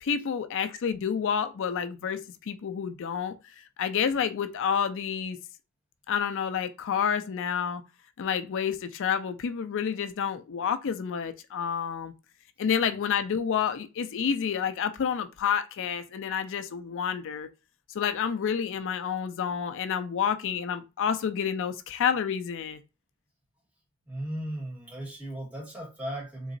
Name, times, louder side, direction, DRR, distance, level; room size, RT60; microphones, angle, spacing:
voice 1, 0.0-3.3 3.8-5.4 6.1-7.8 8.2-12.1 12.6-17.5 17.9-22.8, left 7 dB, 60° left, 0.4 m, -29 dB
voice 2, 24.1-26.5, right 1 dB, 5° right, 1.9 m, -36 dB
3.9 x 2.9 x 2.5 m
head